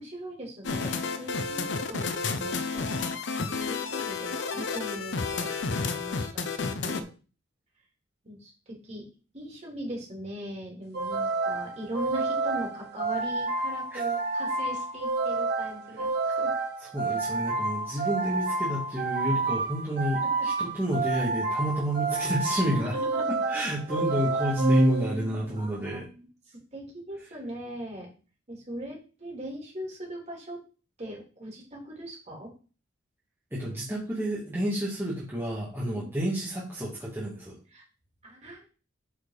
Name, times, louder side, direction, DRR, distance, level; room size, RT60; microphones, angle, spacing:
voice 1, 0.0-1.6 1.9-3.1 3.5-7.1 8.2-9.1 9.3-16.5 22.6-23.2 23.9-24.0 25.6-26.2 26.5-28.1 28.5-30.6 31.0-32.5 35.9-36.1 37.7-37.8 38.2-38.6, equal, 35° right, -2 dB, 3.6 m, -40 dB
sound 1, 0.6-7.0, left 4 dB, 65° left, 0.8 m, -31 dB
sound 2, 10.9-25.5, right 3 dB, 60° right, 2.1 m, -29 dB
voice 2, 16.9-22.9 23.3-26.1 33.5-37.6, equal, 10° right, -8 dB, 2.3 m, -30 dB
8.9 x 5.0 x 4.2 m, 0.35 s
head